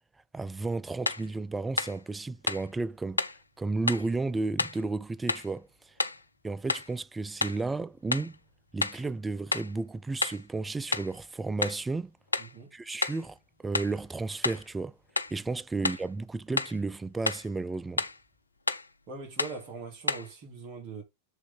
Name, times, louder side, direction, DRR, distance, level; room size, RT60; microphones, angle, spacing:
voice 1, 0.3-3.2 3.6-5.7 6.4-8.4 8.7-12.2 12.7-15.0 15.3-18.0, right 3 dB, 10° right, 0.4 m, -33 dB
sound 1, 1.1-1.3 1.8-2.0 2.5-2.7 3.2-3.4 3.9-4.1 4.6-4.8 5.3-5.5 6.0-6.2 6.7-6.9 7.4-7.6 8.1-8.3 8.8-9.0 9.5-9.8 10.2-10.4 10.9-11.2 11.6-11.8 12.3-12.6 13.0-13.2 13.7-14.0 14.4-14.7 15.2-15.4 15.8-16.1 16.6-16.8 17.3-17.5 18.0-18.2 18.7-18.9 19.4-19.6 20.1-20.3, left 3 dB, 80° left, 0.4 m, -31 dB
voice 2, 12.4-12.7 19.1-21.0, right 4 dB, 40° right, 3.2 m, -41 dB
7.9 x 3.8 x 3.9 m
figure-of-eight pair, 90°, 0 cm